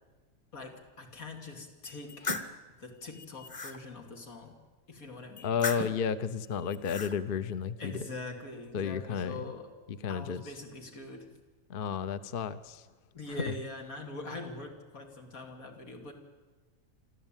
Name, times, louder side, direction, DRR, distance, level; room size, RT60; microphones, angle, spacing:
voice 1, 0.5-2.3 2.8-4.5 4.9-5.5 7.8-9.7 10.1-11.4 13.1-16.1, left 2 dB, 90° left, 2 dB, 3.2 m, -43 dB
sound 1, 1.8-2.5 3.1-3.8 5.4-6.1 6.6-7.1, left 3 dB, 25° left, 1.2 m, -37 dB
voice 2, 5.4-8.0 8.7-9.4 9.9-10.4 11.7-12.9, left 7 dB, 45° left, 13 dB, 0.9 m, -32 dB
26.0 x 14.0 x 9.0 m, 1.3 s
omnidirectional pair, 1.4 m